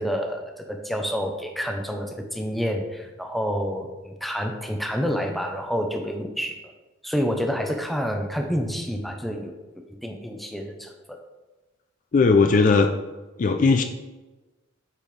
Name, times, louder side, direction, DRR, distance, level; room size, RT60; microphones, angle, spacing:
voice 1, 0.0-6.6 7.0-11.2, equal, ahead, 3 dB, 0.7 m, -28 dB
voice 2, 12.1-12.9 13.4-13.8, left 4 dB, 40° left, 6 dB, 0.4 m, -18 dB
8.4 x 4.3 x 3.3 m, 1.1 s
head